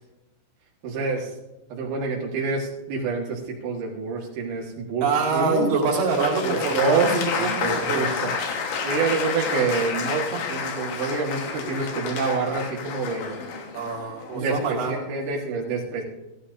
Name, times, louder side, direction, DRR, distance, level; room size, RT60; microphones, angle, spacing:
voice 1, 0.8-1.3 1.7-5.7 6.4-7.1 7.4-8.3 8.8-13.4 14.3-16.0, right 4 dB, 75° right, -4 dB, 3.9 m, -27 dB
voice 2, 5.0-8.0 13.7-14.9, right 4 dB, 55° right, -3 dB, 3.7 m, -25 dB
Applause, 5.8-14.8, left 5 dB, 75° left, 3.7 m, -30 dB
16.0 x 13.5 x 2.7 m, 1.0 s
omnidirectional pair, 5.2 m